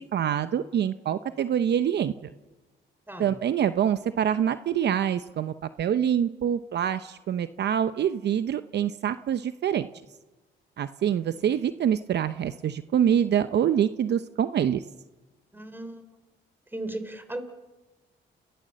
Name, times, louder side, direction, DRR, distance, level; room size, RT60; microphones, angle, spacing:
voice 1, 0.1-2.1 3.2-9.9 10.8-14.8, right 9 dB, 60° right, 12 dB, 0.8 m, -25 dB
voice 2, 15.5-16.0 16.7-17.4, right 1 dB, 10° right, 9 dB, 3.7 m, -36 dB
29.5 x 16.0 x 7.6 m, 1.2 s
cardioid pair, 90°, 20 cm